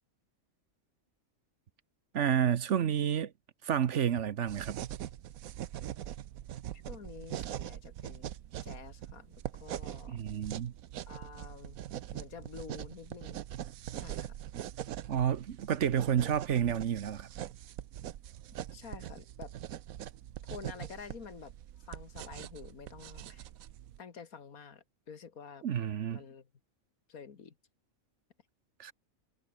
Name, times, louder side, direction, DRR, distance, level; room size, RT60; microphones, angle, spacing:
voice 1, 2.1-3.3 3.6-4.8 10.1-10.7 15.1-17.3 25.6-26.2 28.8-28.9, right 9 dB, 60° right, 1.2 m, -30 dB
sound 1, 4.5-24.0, right 11 dB, 80° right, 1.2 m, -43 dB
voice 2, 6.7-8.4 8.6-10.2 11.1-11.8 12.1-13.4 13.9-14.4 18.7-19.5 20.4-21.5 21.9-23.5 24.0-25.7 26.1-26.5 27.1-27.5, left 6 dB, 90° left, 2.2 m, -49 dB
omnidirectional pair, 1.5 m